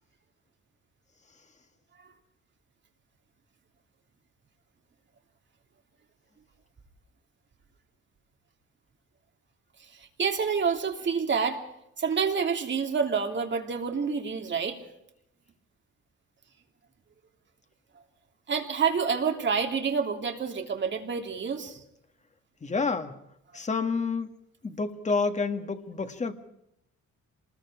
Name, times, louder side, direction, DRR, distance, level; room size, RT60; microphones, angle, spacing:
voice 1, 10.2-11.6 12.0-14.8 18.5-21.8, right 6 dB, 40° right, 4 dB, 3.1 m, -28 dB
voice 2, 22.6-23.1 23.5-24.3 24.6-26.3, left 4 dB, 25° left, 7 dB, 1.7 m, -29 dB
27.0 x 21.0 x 4.9 m, 0.80 s
cardioid pair, 150°, 30 cm